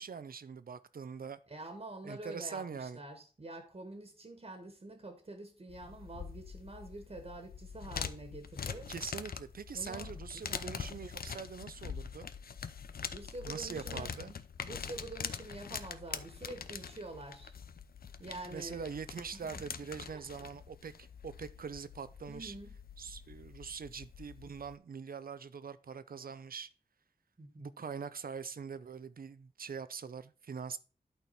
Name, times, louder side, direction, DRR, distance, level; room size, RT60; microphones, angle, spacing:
voice 1, 0.0-1.4 2.0-3.0 8.9-12.3 13.5-14.3 18.5-22.6 23.0-26.7 27.6-30.8, right 6 dB, 70° right, 0.6 m, -43 dB
voice 2, 1.5-8.9 9.7-10.9 13.1-14.1 14.6-17.5 18.2-18.8 19.3-19.6 20.1-20.2 22.2-22.7 27.4-27.7, right 2 dB, 40° right, 1.6 m, -47 dB
sound 1, 5.7-24.8, left 6 dB, 70° left, 0.6 m, -44 dB
11.5 x 4.4 x 4.2 m
wide cardioid pair, 70°, 16 cm